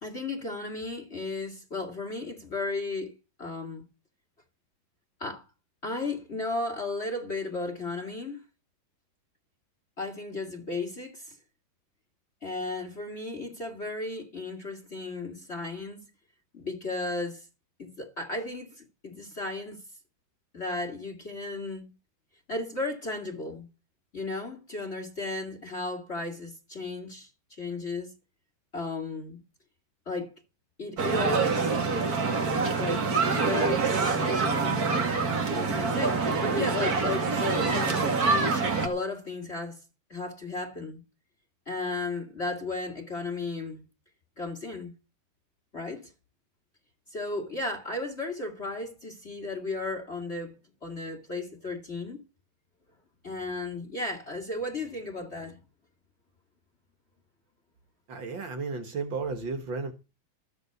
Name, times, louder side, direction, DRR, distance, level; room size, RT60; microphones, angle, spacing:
voice 1, 0.0-3.1 3.4-3.8 5.2-5.5 5.8-8.4 10.0-11.4 12.4-16.1 16.5-17.5 17.8-19.8 20.5-21.9 22.5-23.7 24.1-28.1 28.7-29.4 30.1-30.3 30.8-31.8 32.8-33.1 33.4-34.2 35.5-39.8 40.1-41.0 41.7-43.8 44.4-44.9 45.7-46.1 47.1-50.5 50.8-52.2 53.2-55.6, left 2 dB, 30° left, 2.5 m, -34 dB
sound 1, 31.0-38.9, right 4 dB, 50° right, 2.4 m, -26 dB
voice 2, 58.1-59.9, right 4 dB, 70° right, 2.3 m, -33 dB
14.5 x 6.9 x 8.0 m
omnidirectional pair, 2.2 m